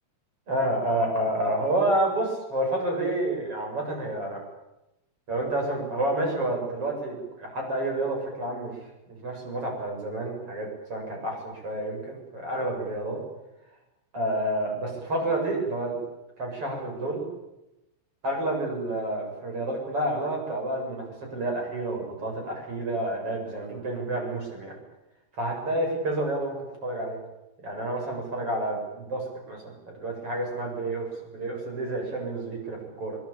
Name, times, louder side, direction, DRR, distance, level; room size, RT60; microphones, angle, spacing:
voice 1, 0.5-4.4 5.3-8.7 9.1-13.2 14.1-16.0 16.4-17.3 18.2-21.0 21.3-24.7 25.4-26.6 26.8-27.2 27.6-33.2, right 1 dB, 35° right, 1 dB, 8.9 m, -29 dB
25.5 x 23.0 x 9.0 m, 0.94 s
omnidirectional pair, 4.7 m